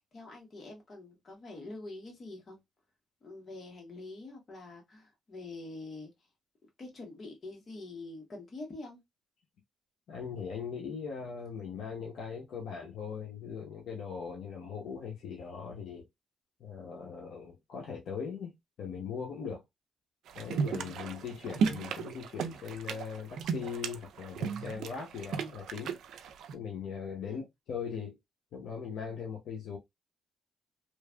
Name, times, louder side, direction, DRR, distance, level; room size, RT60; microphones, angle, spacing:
voice 1, 0.1-2.6 3.2-6.1 6.8-9.0 27.2-27.4, left 2 dB, 40° left, 1.5 m, -45 dB
voice 2, 10.1-16.0 16.6-19.6 20.3-26.0 26.5-28.2 28.5-29.8, left 6 dB, 75° left, 0.8 m, -40 dB
sound 1, 20.3-26.5, right 6 dB, 75° right, 0.4 m, -35 dB
3.1 x 2.5 x 2.2 m
cardioid pair, 90°, 0 cm